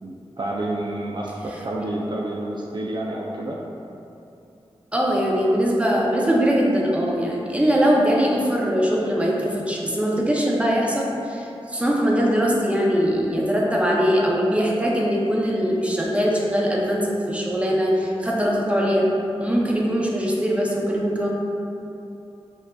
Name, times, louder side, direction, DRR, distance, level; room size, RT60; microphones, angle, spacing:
voice 1, 0.0-3.6, right 1 dB, 50° right, -3 dB, 0.4 m, -29 dB
voice 2, 4.9-19.1 19.4-21.3, equal, 10° right, -3 dB, 0.7 m, -21 dB
6.9 x 2.6 x 2.3 m, 2.8 s
wide cardioid pair, 65°, 10 cm